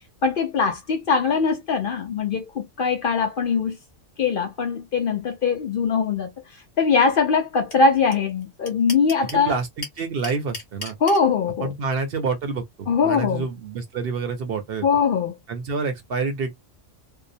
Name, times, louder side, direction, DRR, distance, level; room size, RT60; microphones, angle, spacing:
voice 1, 0.2-3.8 4.2-6.3 6.8-9.5 11.0-11.7 12.9-13.4 14.8-15.3, left 5 dB, 55° left, 0.7 m, -21 dB
sound 1, 7.7-7.8 8.1-8.2 8.4-9.4 9.8-11.2, left 3 dB, 40° left, 1.2 m, -34 dB
voice 2, 9.3-11.0 11.6-14.9 15.5-16.5, right 4 dB, 60° right, 0.7 m, -28 dB
2.7 x 2.0 x 2.6 m
omnidirectional pair, 1.3 m